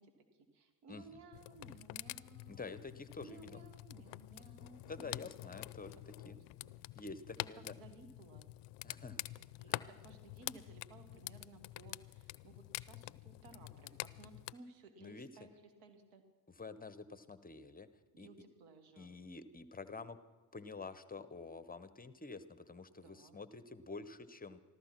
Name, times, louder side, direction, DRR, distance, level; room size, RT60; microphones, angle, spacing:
voice 1, 0.0-2.7 3.2-5.3 5.7-7.1 7.4-8.5 9.6-16.2 18.1-19.2 23.0-23.4, right 3 dB, 85° right, 8 dB, 1.7 m, -58 dB
voice 2, 0.9-1.2 2.5-3.6 4.9-6.4 6.9-7.7 8.8-9.2 9.7-9.8 15.0-15.3 16.6-17.9 18.2-18.3 19.0-20.2 20.5-24.6, left 4 dB, 20° left, 13 dB, 0.9 m, -48 dB
sound 1, 1.3-14.5, left 19 dB, 65° left, 0.5 m, -47 dB
14.5 x 13.0 x 5.9 m, 1.2 s
hypercardioid pair, 60°, 46 cm